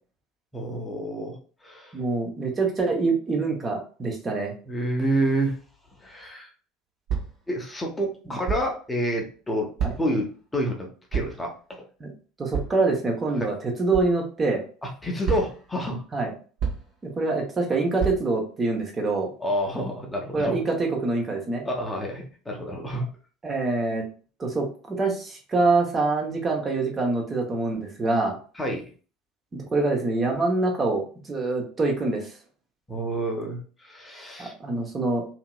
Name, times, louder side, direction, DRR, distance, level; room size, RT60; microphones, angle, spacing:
voice 1, 0.5-2.0 4.7-5.6 6.0-6.5 7.5-9.7 10.0-11.8 13.4-13.5 14.8-16.0 19.4-20.6 21.6-23.1 28.5-28.8 32.9-34.5, equal, 15° left, 1 dB, 0.8 m, -29 dB
voice 2, 1.9-4.5 9.8-9.9 12.0-12.1 12.4-14.6 16.1-16.3 17.0-19.3 20.3-21.6 23.4-24.0 24.4-28.4 29.5-32.3 34.4-35.3, right 3 dB, 25° right, 1 dB, 0.8 m, -25 dB
sound 1, 7.1-7.5 8.4-8.7 9.8-10.2 11.1-11.5 12.5-12.7 13.9-14.1 15.2-15.7 16.6-17.0 18.0-18.2, right 6 dB, 50° right, 1.0 m, -28 dB
2.8 x 2.8 x 2.2 m, 0.39 s
figure-of-eight pair, 70°, 0 cm